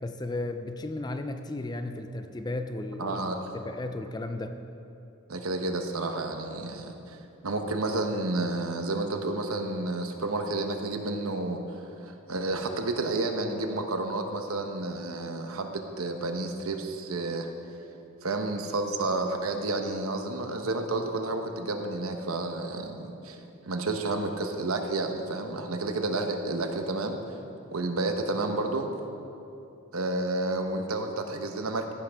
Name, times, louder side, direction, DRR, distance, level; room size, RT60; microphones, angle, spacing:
voice 1, 0.0-3.2 3.5-4.6, left 2 dB, 20° left, 8 dB, 0.4 m, -34 dB
voice 2, 3.0-3.4 5.3-7.2 7.4-17.5 18.2-23.4 23.7-27.4 27.7-28.9 29.9-31.9, right 2 dB, 75° right, 5 dB, 1.0 m, -30 dB
15.0 x 10.5 x 3.6 m, 2.8 s
head